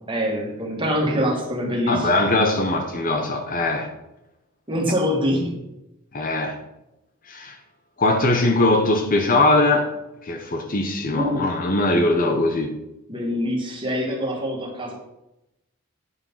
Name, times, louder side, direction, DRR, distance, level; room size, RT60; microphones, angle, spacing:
voice 1, 0.0-2.1 4.7-5.6 11.1-11.4 13.1-14.9, equal, 25° right, 2.3 m, -24 dB
voice 2, 1.9-3.9 6.1-6.6 7.3-7.6 8.0-9.9 10.2-12.8, left 2 dB, 40° left, 0.9 m, -21 dB
9.5 x 5.4 x 5.6 m
head